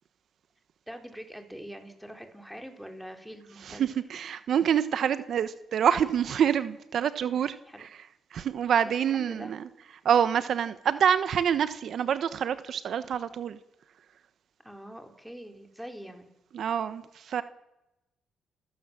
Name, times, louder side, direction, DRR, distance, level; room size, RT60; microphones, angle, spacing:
voice 1, 0.9-3.9 7.6-7.9 8.8-9.5 14.6-16.3, equal, ahead, 4.1 m, -44 dB
voice 2, 3.6-7.9 8.3-9.6 10.0-13.6 16.5-17.4, right 8 dB, 65° right, 1.1 m, -26 dB
29.5 x 15.0 x 7.5 m
cardioid pair, 90°, 0 cm